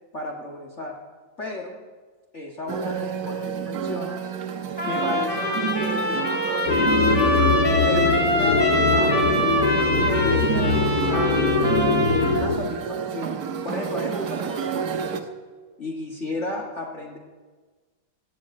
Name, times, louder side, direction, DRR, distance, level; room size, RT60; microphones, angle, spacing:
voice 1, 0.1-1.0 1.4-1.8 2.3-4.3 4.9-6.3 7.1-7.5 7.9-11.6 12.1-15.3 15.8-17.2, left 2 dB, 40° left, 0 dB, 1.9 m, -33 dB
sound 1, 2.7-15.2, right 7 dB, 60° right, 1.4 m, -30 dB
Trumpet, 4.8-12.4, equal, 20° left, 3.0 m, -24 dB
sound 2, 6.7-12.6, left 4 dB, 70° left, 2.8 m, -22 dB
16.0 x 8.6 x 8.6 m, 1.4 s
omnidirectional pair, 2.0 m